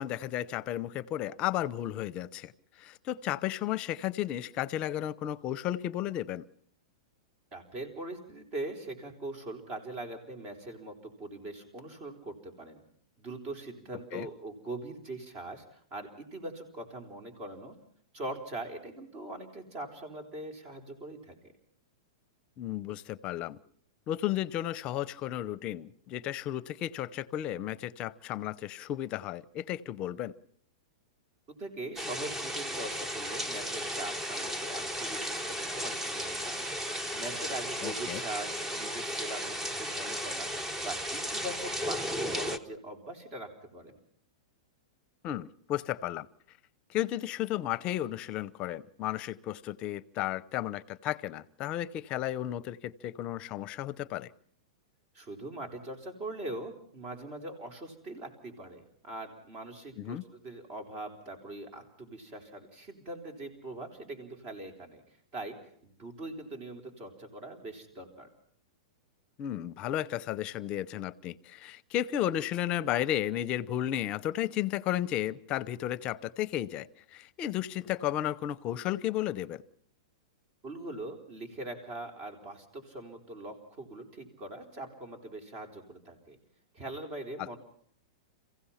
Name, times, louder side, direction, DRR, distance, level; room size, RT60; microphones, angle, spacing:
voice 1, 0.0-2.5 2.8-6.4 14.1-14.3 22.6-23.6 24.1-30.3 37.8-38.2 45.2-46.3 46.9-54.3 60.0-60.2 69.4-79.6, left 12 dB, 35° left, 18 dB, 0.7 m, -33 dB
voice 2, 7.5-12.8 13.2-17.8 18.1-21.5 31.5-36.7 37.1-44.0 55.1-65.0 65.3-65.6 65.8-68.3 80.6-86.4 86.7-87.6, right 2 dB, 40° right, 5 dB, 4.0 m, -42 dB
sound 1, 32.0-42.6, equal, 10° right, 1.1 m, -35 dB
27.5 x 16.0 x 5.8 m, 0.63 s
hypercardioid pair, 135°, 3 cm